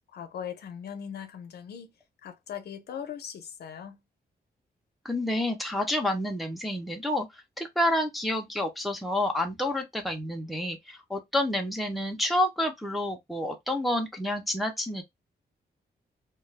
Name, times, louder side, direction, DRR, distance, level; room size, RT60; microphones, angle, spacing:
voice 1, 0.1-1.9 2.2-4.0, left 8 dB, 80° left, 0.5 m, -39 dB
voice 2, 5.0-7.3 7.6-15.0, left 1 dB, ahead, 0.5 m, -29 dB
2.3 x 2.1 x 3.2 m
wide cardioid pair, 170°, 17 cm